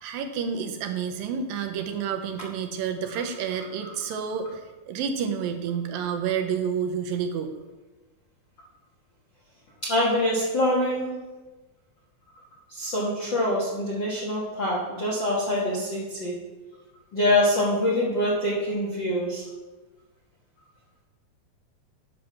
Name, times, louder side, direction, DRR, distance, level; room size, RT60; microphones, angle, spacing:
voice 1, 0.0-7.5, right 7 dB, 85° right, 5 dB, 2.6 m, -29 dB
voice 2, 9.8-11.1 12.7-16.3 17.1-19.5, left 1 dB, 50° left, -5 dB, 1.5 m, -25 dB
9.7 x 6.6 x 5.9 m, 1.2 s
omnidirectional pair, 4.0 m